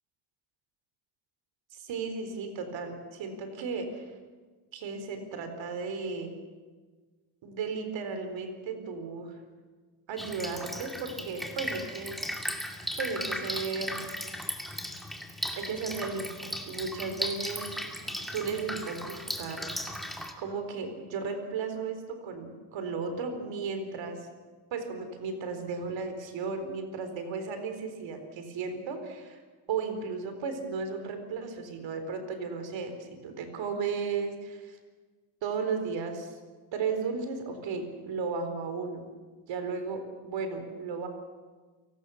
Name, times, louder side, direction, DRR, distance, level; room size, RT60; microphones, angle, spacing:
voice 1, 1.7-4.1 4.7-6.4 7.4-9.4 10.1-12.2 13.0-14.0 15.6-17.8 18.1-19.7 20.4-24.3 24.7-29.4 29.7-34.8 35.4-36.4 36.7-39.1 39.5-41.1, right 5 dB, 70° right, 7 dB, 4.1 m, -35 dB
Drip, 10.2-20.3, equal, ahead, 2.5 m, -37 dB
29.5 x 18.5 x 7.1 m, 1.4 s
cardioid pair, 130°, 46 cm